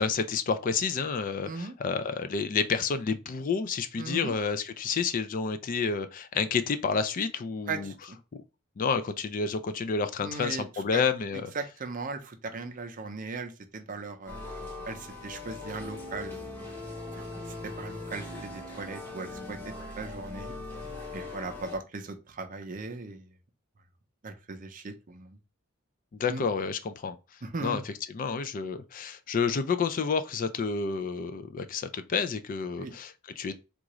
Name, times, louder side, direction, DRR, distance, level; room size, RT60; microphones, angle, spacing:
voice 1, 0.0-7.9 8.3-8.4 8.8-11.5 26.1-27.2 27.6-33.5, left 5 dB, 40° left, 0.3 m, -30 dB
voice 2, 1.4-1.7 4.0-4.4 7.7-8.2 10.2-11.0 11.3-16.5 17.1-17.3 17.6-20.5 21.1-23.3 24.2-25.4 26.3-26.4 27.4-27.8 32.8-32.9, right 3 dB, 40° right, 0.6 m, -38 dB
sound 1, 14.3-21.8, left 2 dB, 10° left, 0.9 m, -40 dB
3.7 x 2.4 x 3.0 m
head